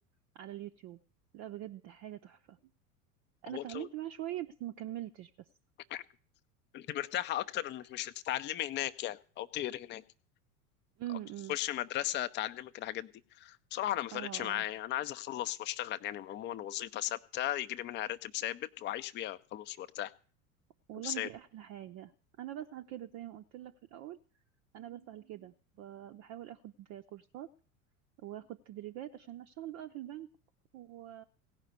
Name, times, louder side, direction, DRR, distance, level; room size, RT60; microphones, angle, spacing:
voice 1, 0.3-1.0 1.3-2.6 3.4-5.5 11.0-11.6 14.1-14.6 20.9-22.1 22.4-24.2 24.7-27.5 28.2-30.3 30.7-31.2, right 13 dB, 40° right, 6 dB, 0.7 m, -43 dB
voice 2, 3.5-3.9 5.9-6.0 6.7-10.0 11.5-13.1 13.4-20.1 21.0-21.3, left 13 dB, 25° left, 11 dB, 0.6 m, -36 dB
16.5 x 5.7 x 9.2 m, 0.43 s
figure-of-eight pair, 80°, 43 cm